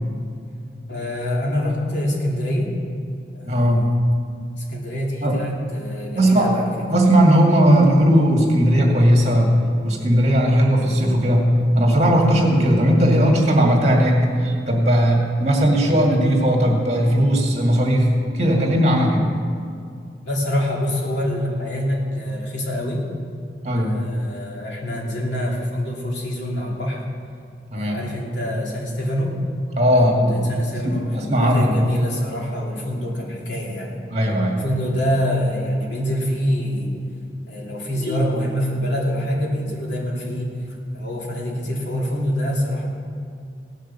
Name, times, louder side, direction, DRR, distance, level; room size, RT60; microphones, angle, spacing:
voice 1, 0.9-2.7 3.3-3.8 4.6-6.7 20.2-23.0 23.7-27.0 27.7-29.4 29.9-34.0 34.6-37.0 37.5-40.6 40.9-42.9, equal, 85° left, -3 dB, 2.8 m, -25 dB
voice 2, 3.4-3.9 5.2-5.4 6.1-6.5 6.9-9.5 9.8-11.5 11.7-18.1 18.3-19.3 23.6-24.0 27.7-28.0 29.8-30.5 30.8-31.7 34.1-34.6 38.0-38.2, equal, 40° right, 0 dB, 2.1 m, -17 dB
17.5 x 6.5 x 6.9 m, 2.3 s
head